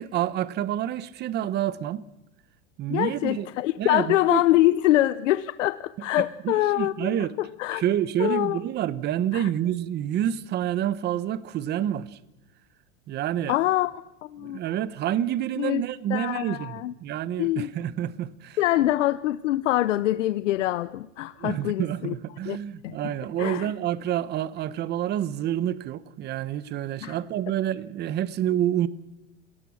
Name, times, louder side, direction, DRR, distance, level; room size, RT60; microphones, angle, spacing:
voice 1, 0.0-2.1 2.8-3.5 3.8-4.4 6.2-7.3 7.7-12.2 13.1-13.6 14.4-18.6 21.4-28.9, right 11 dB, 30° right, 0.9 m, -28 dB
voice 2, 2.9-7.8 8.2-8.6 9.3-9.5 13.5-14.6 15.6-15.8 16.1-16.9 17.4-17.7 18.6-22.1 22.5-22.6 22.8-23.1 23.4-23.7 27.0-27.1, left 15 dB, 85° left, 0.8 m, -25 dB
27.0 x 18.5 x 6.3 m
supercardioid pair, 140°, 36 cm